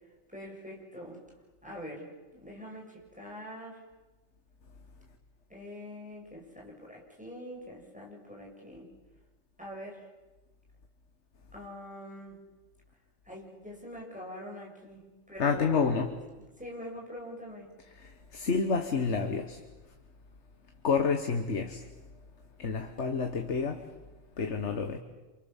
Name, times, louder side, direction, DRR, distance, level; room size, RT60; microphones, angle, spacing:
voice 1, 0.3-1.2 1.6-3.8 5.5-8.9 9.6-10.0 11.5-12.4 13.3-16.1 16.6-17.7, equal, 5° right, 7.1 m, -44 dB
voice 2, 15.4-16.1 17.9-19.6 20.8-21.8 22.6-23.9 24.4-25.0, left 5 dB, 60° left, 1.6 m, -29 dB
29.5 x 27.5 x 7.3 m
omnidirectional pair, 1.4 m